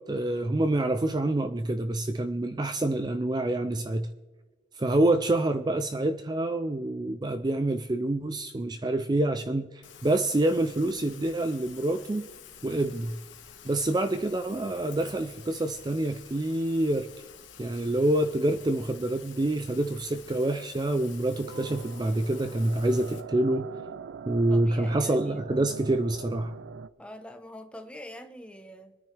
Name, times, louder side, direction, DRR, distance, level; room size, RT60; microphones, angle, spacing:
voice 1, 0.0-4.1 4.8-12.3 12.6-13.1 13.6-17.1 17.6-23.7 24.3-26.5, right 1 dB, 25° right, 0.4 m, -27 dB
Rain, 9.8-23.2, left 8 dB, 85° left, 1.4 m, -50 dB
sound 1, 21.5-26.9, right 6 dB, 85° right, 0.4 m, -42 dB
voice 2, 24.3-25.5 27.0-29.0, left 1 dB, 5° left, 0.9 m, -44 dB
25.5 x 9.7 x 3.4 m
head